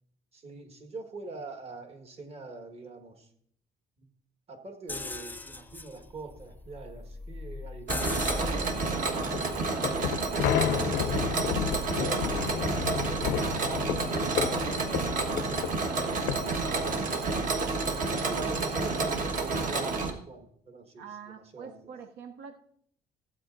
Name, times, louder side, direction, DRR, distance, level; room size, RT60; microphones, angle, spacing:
voice 1, 0.3-3.3 4.0-4.1 4.5-9.2 9.7-11.3 12.0-17.5 18.2-19.1 19.4-21.9, right 3 dB, 35° right, 5 dB, 1.6 m, -44 dB
sound 1, 4.9-10.7, left 2 dB, 10° left, 0.4 m, -39 dB
Mechanisms, 7.9-20.1, right 3 dB, 50° right, 1.4 m, -30 dB
sound 2, 9.2-17.3, left 11 dB, 90° left, 0.5 m, -32 dB
voice 2, 21.0-22.6, right 7 dB, 80° right, 6 dB, 0.7 m, -42 dB
16.0 x 8.5 x 2.6 m, 0.66 s
cardioid pair, 110°, 17 cm